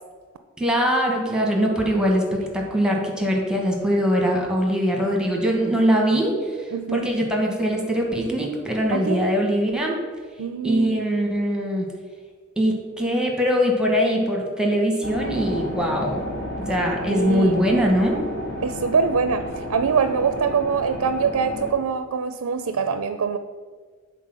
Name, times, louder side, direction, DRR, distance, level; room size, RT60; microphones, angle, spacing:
voice 1, 0.6-10.0 10.6-11.9 12.6-16.2 16.6-18.3, equal, 5° right, 0 dB, 1.0 m, -22 dB
voice 2, 6.7-7.1 8.9-9.4 10.4-11.0 17.1-17.5 18.6-23.4, right 5 dB, 85° right, 9 dB, 0.4 m, -24 dB
sound 1, 15.0-21.7, left 1 dB, 55° left, 1.5 m, -32 dB
8.3 x 4.0 x 6.0 m, 1.5 s
head